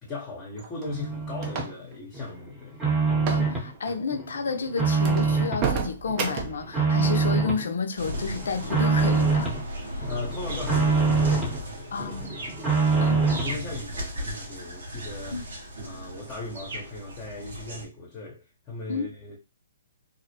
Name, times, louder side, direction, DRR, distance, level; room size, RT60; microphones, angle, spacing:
voice 1, 0.0-2.8 10.1-15.4 15.8-19.4, left 3 dB, 25° left, 0.7 m, -38 dB
sound 1, 0.6-1.9 3.2-3.5 3.7-4.0 4.5-4.6 5.0-6.7, right 6 dB, 35° right, 0.5 m, -31 dB
sound 2, 0.9-1.7 2.1-3.7 4.1-5.7 6.1-7.6 8.0-9.6 10.0-11.6 12.0-13.6, right 4 dB, 10° right, 0.8 m, -25 dB
voice 2, 3.3-10.1 11.9-12.3 13.0-13.3 15.3-15.4 18.9-19.1, left 4 dB, 70° left, 0.4 m, -31 dB
sound 3, 8.0-17.8, equal, 70° right, 0.9 m, -36 dB
2.4 x 2.0 x 2.8 m
hypercardioid pair, 135°, 0 cm